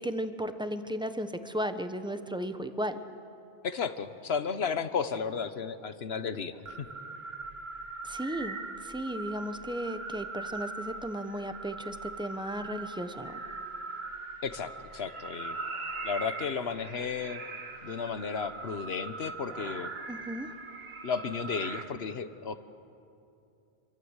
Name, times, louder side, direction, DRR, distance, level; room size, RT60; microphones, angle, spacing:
voice 1, 0.0-3.0 8.0-13.4 20.1-20.5, equal, 5° right, 9 dB, 1.1 m, -35 dB
voice 2, 3.6-6.9 14.4-15.6 16.0-17.4 17.8-19.9 21.0-22.6, left 6 dB, 75° left, 11 dB, 1.3 m, -33 dB
sound 1, 6.7-21.8, right 3 dB, 75° right, 1.8 m, -41 dB
27.0 x 24.5 x 8.1 m, 2.7 s
omnidirectional pair, 1.1 m